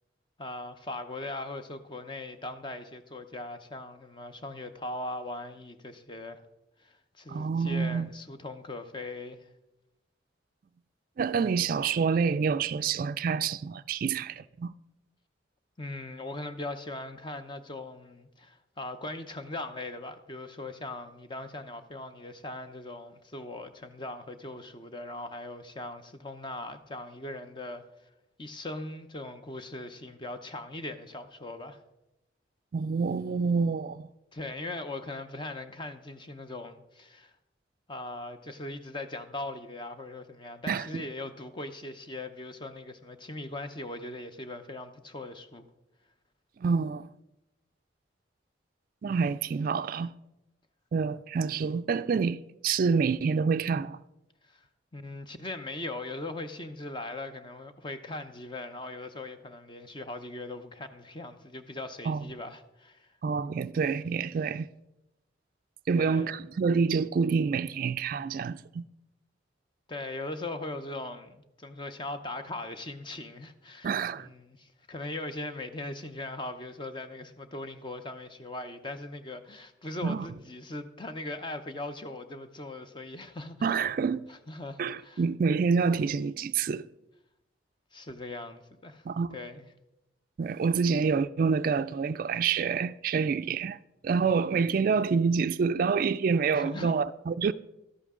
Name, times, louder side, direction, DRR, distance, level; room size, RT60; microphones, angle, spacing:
voice 1, 0.4-6.4 6.8-9.5 15.8-27.8 28.4-31.8 34.3-37.3 37.9-45.7 54.5-54.7 54.9-63.1 65.9-66.4 69.9-83.8 84.3-85.2 87.9-89.0 89.3-89.7 96.5-96.9, left 2 dB, 25° left, 0.7 m, -40 dB
voice 2, 7.3-8.1 11.2-14.7 32.7-34.1 40.7-41.0 46.6-47.1 49.0-50.1 50.9-54.0 62.1-62.2 63.2-64.7 65.9-68.8 73.8-74.3 80.0-80.3 83.6-84.3 84.8-86.9 89.1-89.3 90.4-97.5, right 5 dB, 50° right, 0.3 m, -27 dB
12.5 x 11.0 x 3.7 m
head